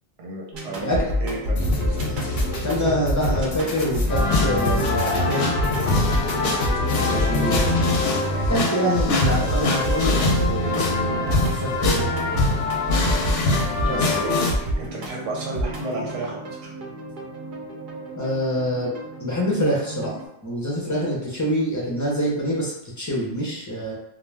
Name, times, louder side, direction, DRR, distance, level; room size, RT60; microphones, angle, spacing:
voice 1, 0.2-1.6 6.9-7.3 13.9-16.7, right 2 dB, 85° right, -2 dB, 1.1 m, -32 dB
sound 1, 0.5-20.3, equal, 55° right, 0.6 m, -29 dB
sound 2, 1.6-8.2, left 3 dB, 60° left, 0.7 m, -28 dB
voice 2, 2.2-5.5 7.0-7.6 8.5-12.1 13.8-14.2 18.2-18.9 19.2-20.1 20.4-23.9, equal, 20° left, -4 dB, 0.5 m, -26 dB
sound 3, 4.1-14.5, left 2 dB, 90° left, 0.9 m, -23 dB
2.3 x 2.2 x 3.3 m, 0.86 s
omnidirectional pair, 1.2 m